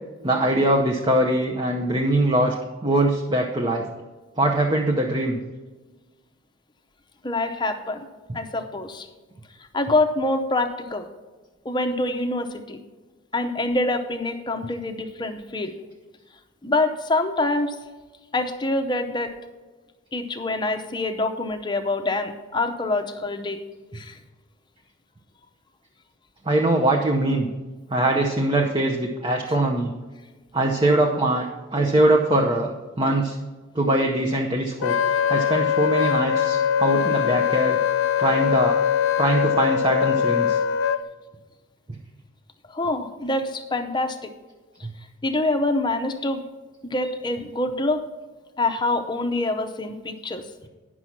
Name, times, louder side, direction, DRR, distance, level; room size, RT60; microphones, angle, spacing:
voice 1, 0.2-2.5 2.8-3.9 4.4-5.4 26.4-27.5 27.9-29.9 30.5-32.7 33.0-33.4 33.7-35.0 35.3-37.8 38.2-38.8 39.2-40.6 44.8-44.9, right 1 dB, 25° right, 2 dB, 0.6 m, -22 dB
voice 2, 7.2-8.0 8.3-9.1 9.7-11.1 11.6-12.8 13.3-15.7 16.6-17.8 18.3-19.3 20.1-23.6 23.9-24.2 42.7-44.3 45.2-46.4 46.8-48.0 48.6-50.4, left 2 dB, 20° left, 6 dB, 0.7 m, -25 dB
Wind instrument woodwind instrument, 34.8-41.0, left 9 dB, 70° left, 0.4 m, -22 dB
9.6 x 6.1 x 5.8 m, 1.3 s
head